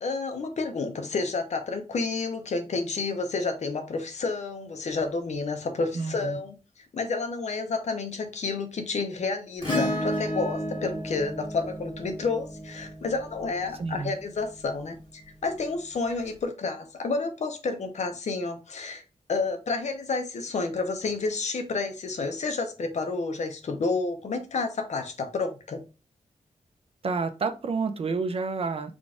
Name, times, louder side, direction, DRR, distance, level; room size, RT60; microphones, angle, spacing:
voice 1, 0.0-6.6 6.9-19.0 19.3-25.8, left 4 dB, 65° left, 6 dB, 0.7 m, -30 dB
voice 2, 5.9-6.4 13.8-14.1 27.0-29.0, right 4 dB, 50° right, 9 dB, 0.4 m, -29 dB
Acoustic guitar / Strum, 9.6-14.2 16.1-16.2, equal, 35° left, 1.8 m, -32 dB
3.7 x 2.4 x 3.6 m, 0.31 s
wide cardioid pair, 155°, 13 cm